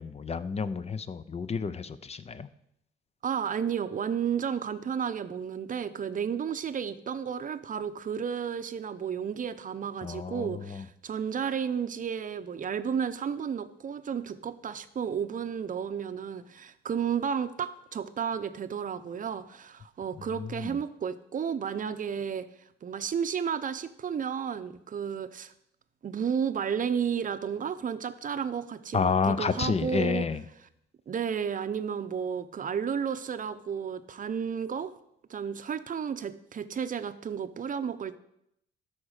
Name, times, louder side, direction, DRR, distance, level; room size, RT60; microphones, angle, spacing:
voice 1, 0.0-2.5 10.0-10.8 20.3-20.8 28.9-30.4, left 5 dB, 30° left, 14 dB, 0.6 m, -30 dB
voice 2, 3.2-22.5 22.8-25.5 26.0-30.3 31.1-34.9 35.3-38.2, right 7 dB, 45° right, 12 dB, 0.7 m, -32 dB
12.5 x 4.3 x 6.5 m, 0.77 s
cardioid pair, 90°, 20 cm